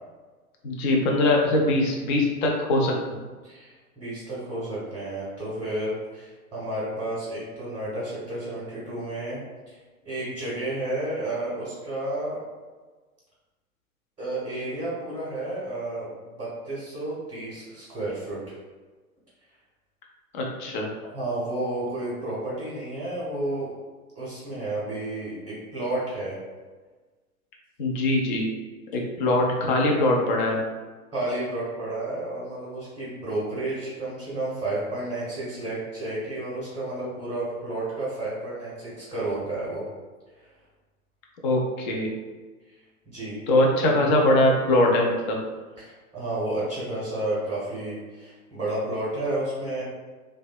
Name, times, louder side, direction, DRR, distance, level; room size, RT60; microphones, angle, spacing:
voice 1, 0.6-2.9 20.3-20.9 27.8-28.4 28.9-30.6 41.4-42.1 43.5-45.4, left 1 dB, 35° left, 0 dB, 0.4 m, -22 dB
voice 2, 3.4-9.4 9.7-9.8 10.0-12.4 14.2-18.6 21.1-23.7 24.1-26.4 31.1-39.8 40.4-40.5 43.1-43.4 45.8-49.8, right 1 dB, 10° right, -9 dB, 0.7 m, -31 dB
2.6 x 2.2 x 2.2 m, 1.3 s
figure-of-eight pair, 105°, 43 cm